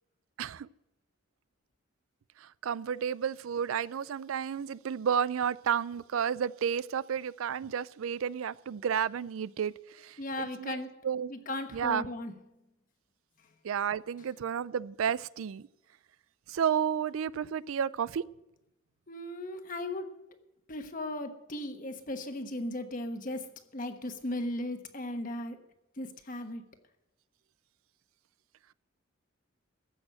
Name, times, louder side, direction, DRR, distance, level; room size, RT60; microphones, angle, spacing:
voice 1, 0.4-0.7 2.4-10.8 11.0-11.3 11.7-12.1 13.6-15.7 16.5-18.2, right 8 dB, 80° right, 0.4 m, -32 dB
voice 2, 10.2-11.0 11.3-12.3 19.1-20.2 20.7-25.6 26.0-26.6, left 1 dB, 40° left, 1.2 m, -37 dB
15.0 x 6.3 x 8.8 m
head